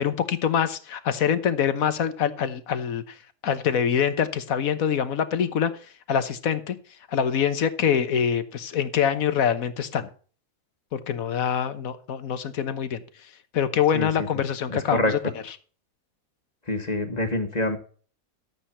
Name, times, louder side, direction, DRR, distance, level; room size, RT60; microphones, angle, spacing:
voice 1, 0.0-3.0 3.4-5.7 6.1-6.8 7.1-10.1 10.9-13.0 13.5-15.2, left 8 dB, 75° left, 12 dB, 1.5 m, -24 dB
voice 2, 13.9-14.3 14.7-15.1 16.7-17.8, left 1 dB, 30° left, 6 dB, 1.6 m, -26 dB
12.0 x 8.4 x 4.3 m, 0.41 s
omnidirectional pair, 1.5 m